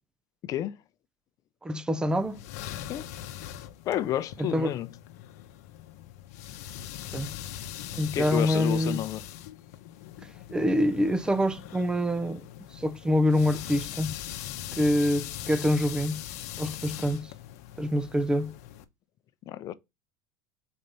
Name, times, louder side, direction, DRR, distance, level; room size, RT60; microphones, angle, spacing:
voice 1, 0.4-0.8 2.9-3.1 3.9-4.9 8.1-9.2 19.5-19.7, left 12 dB, 45° left, 0.7 m, -30 dB
voice 2, 1.6-2.4 4.5-4.7 7.1-7.3 7.9-9.0 10.5-12.5 12.7-14.2 14.7-16.2 16.6-17.3 17.8-18.5, left 1 dB, 10° right, 0.5 m, -26 dB
sound 1, 2.1-18.8, left 11 dB, 80° left, 0.8 m, -41 dB
4.4 x 4.2 x 5.3 m
supercardioid pair, 110°, 8 cm